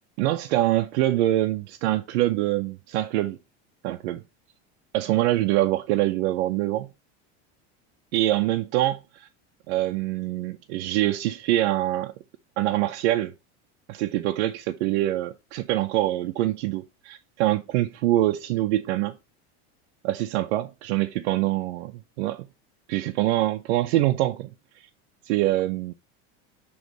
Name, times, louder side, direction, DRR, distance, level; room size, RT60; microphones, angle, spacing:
voice 1, 0.2-3.4 3.8-4.2 4.9-6.9 8.1-9.3 9.7-12.1 12.6-13.3 13.9-19.1 20.0-22.5 22.9-24.5 25.3-25.9, right 15 dB, 75° right, 0.6 m, -24 dB
6.2 x 3.1 x 5.0 m
cardioid pair, 170°, 33 cm